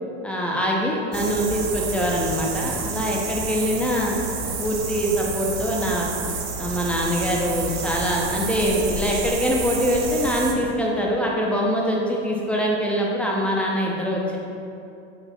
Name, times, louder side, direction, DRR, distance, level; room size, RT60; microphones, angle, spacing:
voice 1, 0.2-4.2 4.4-6.1 6.6-14.4, equal, 5° left, -3 dB, 0.3 m, -24 dB
sound 1, 1.1-10.5, right 4 dB, 45° right, 0.6 m, -30 dB
5.0 x 2.6 x 2.5 m, 2.7 s
hypercardioid pair, 100°, 36 cm